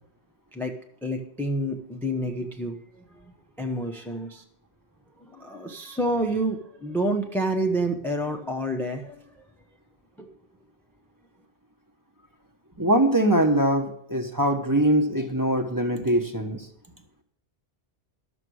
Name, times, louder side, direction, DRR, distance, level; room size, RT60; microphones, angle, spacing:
voice 1, 1.0-2.8 3.6-4.4 5.2-9.2 10.2-10.3, right 1 dB, ahead, 3 dB, 0.8 m, -28 dB
voice 2, 12.8-16.7, right 1 dB, 20° right, 4 dB, 1.2 m, -22 dB
12.5 x 6.9 x 6.3 m, 0.69 s
omnidirectional pair, 1.2 m